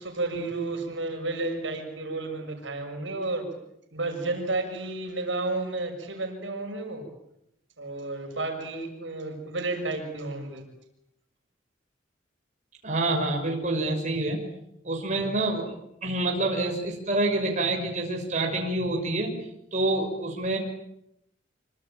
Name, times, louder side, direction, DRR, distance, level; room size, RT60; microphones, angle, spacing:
voice 1, 0.0-3.4 3.9-7.0 7.8-10.6, right 2 dB, 75° right, 4 dB, 6.7 m, -32 dB
voice 2, 12.8-14.4 14.8-15.7 16.0-19.3 19.7-20.6, right 2 dB, 40° right, 1 dB, 6.0 m, -27 dB
26.5 x 25.0 x 8.9 m, 0.78 s
head